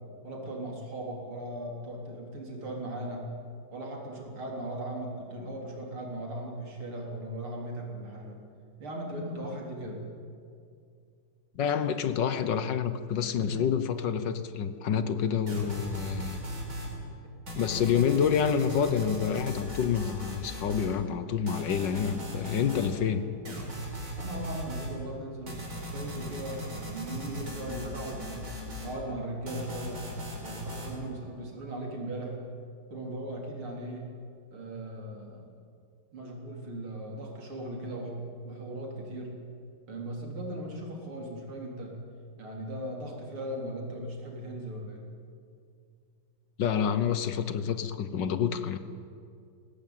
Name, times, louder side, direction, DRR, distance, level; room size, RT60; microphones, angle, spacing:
voice 1, 0.2-3.3 3.7-8.4 8.8-10.0 24.2-25.6 25.9-28.5 28.8-30.1 30.4-32.4 32.9-34.1 34.5-35.5 36.1-39.4 39.9-42.0 42.4-45.0, right 1 dB, 85° right, 0 dB, 4.5 m, -38 dB
voice 2, 11.5-16.4 17.5-23.2 46.6-48.8, left 7 dB, 65° left, 11 dB, 1.6 m, -28 dB
sound 1, 15.5-16.9 17.5-21.0 21.5-22.9 23.4-24.9 25.5-29.0 29.5-30.9, equal, 45° right, 4.9 m, -39 dB
20.5 x 18.0 x 9.1 m, 2.4 s
omnidirectional pair, 2.3 m